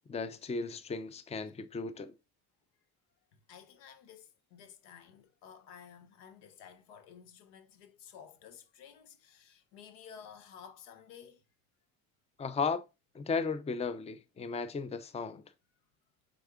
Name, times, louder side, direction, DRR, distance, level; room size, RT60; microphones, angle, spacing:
voice 1, 0.1-2.1 12.4-12.8 13.1-15.4, left 5 dB, 15° left, 0.5 m, -35 dB
voice 2, 3.3-11.4, left 7 dB, 90° left, 0.8 m, -53 dB
4.6 x 3.6 x 2.4 m
supercardioid pair, 80°, 40 cm